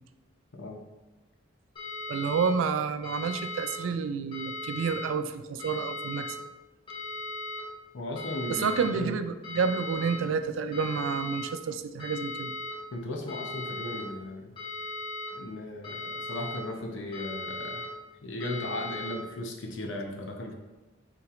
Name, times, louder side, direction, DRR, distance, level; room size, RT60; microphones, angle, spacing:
sound 1, 1.8-2.5 3.0-3.8 4.3-5.0 5.6-6.3 6.9-7.6 8.2-8.9 9.4-10.2 10.7-11.5 12.0-12.7 13.3-14.0 14.6-15.3 15.8-16.6 17.1-17.9 18.4-19.1, left 2 dB, 25° left, 1.2 m, -37 dB
voice 1, 2.1-6.4 8.5-12.5, right 6 dB, 85° right, 11 dB, 0.3 m, -29 dB
voice 2, 7.9-9.2 12.9-14.5 15.3-17.9 18.2-20.5, left 1 dB, 70° left, 3 dB, 0.6 m, -36 dB
5.7 x 3.1 x 2.4 m, 1.1 s
head